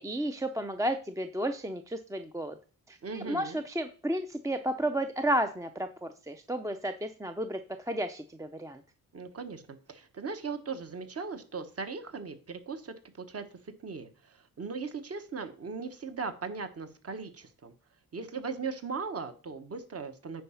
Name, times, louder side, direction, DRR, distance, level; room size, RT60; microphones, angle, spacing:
voice 1, 0.0-2.6 2.9-8.8, right 1 dB, 10° right, 8 dB, 0.5 m, -32 dB
voice 2, 3.0-3.6 9.1-17.7 18.1-20.4, right 5 dB, 40° right, 9 dB, 1.2 m, -38 dB
9.4 x 4.7 x 5.7 m, 0.38 s
wide cardioid pair, 140°, 36 cm